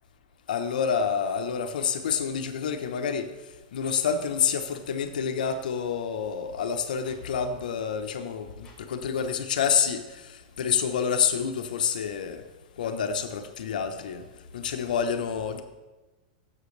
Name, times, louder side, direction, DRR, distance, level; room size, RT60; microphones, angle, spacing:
voice 1, 0.5-3.3 3.7-12.4 12.8-14.2 14.5-15.6, left 7 dB, 85° left, 7 dB, 1.1 m, -28 dB
sound 1, 3.8-4.0 5.4-5.5 7.0-7.2 8.6-8.8, left 4 dB, 20° left, 3.3 m, -54 dB
14.5 x 7.7 x 3.4 m, 1.2 s
supercardioid pair, 160°, 4 cm